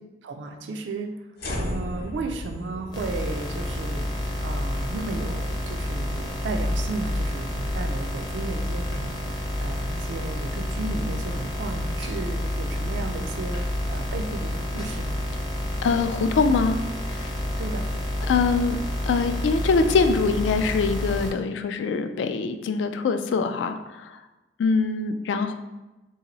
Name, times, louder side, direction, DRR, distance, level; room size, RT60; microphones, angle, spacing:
voice 1, 0.2-1.3 1.5-4.1 4.4-15.2 17.6-17.9, right 3 dB, 70° right, 5 dB, 0.3 m, -34 dB
sound 1, 1.4-7.7, left 1 dB, 55° left, 0.7 m, -37 dB
sound 2, 2.9-21.3, left 1 dB, 25° left, 0.5 m, -29 dB
voice 2, 15.8-16.8 17.1-17.3 18.3-18.8 19.0-24.2 24.6-25.5, left 4 dB, 80° left, 9 dB, 0.3 m, -23 dB
2.9 x 2.8 x 4.0 m, 1.1 s
head